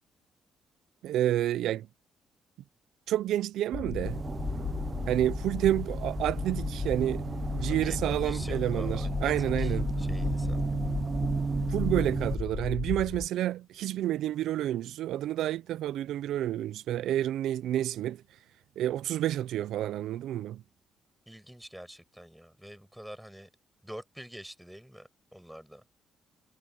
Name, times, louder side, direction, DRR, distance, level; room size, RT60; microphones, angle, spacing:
voice 1, 1.0-1.9 3.1-4.2 5.1-7.3 7.5-9.9 11.7-18.4 18.8-20.6, right 12 dB, 80° right, 0.5 m, -29 dB
sound 1, 3.7-13.3, left 6 dB, 45° left, 4.1 m, -35 dB
sound 2, 4.0-12.4, right 5 dB, 35° right, 0.6 m, -34 dB
voice 2, 7.7-10.7 21.3-23.5 23.8-25.8, equal, 5° right, 6.1 m, -46 dB
cardioid pair, 90°, 0 cm